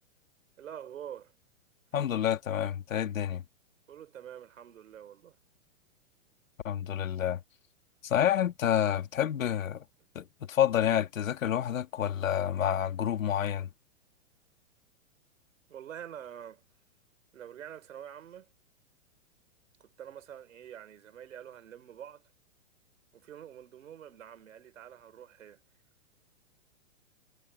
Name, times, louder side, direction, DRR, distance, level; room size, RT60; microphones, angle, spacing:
voice 1, 0.6-1.3 3.9-5.4 10.0-10.1 15.7-16.6 17.3-18.5 19.8-22.3 23.1-25.6, right 9 dB, 80° right, 5.1 m, -46 dB
voice 2, 1.9-3.4 6.6-7.4 8.0-9.8 10.1-13.7, left 10 dB, 85° left, 2.5 m, -28 dB
hypercardioid pair, 140°, 39 cm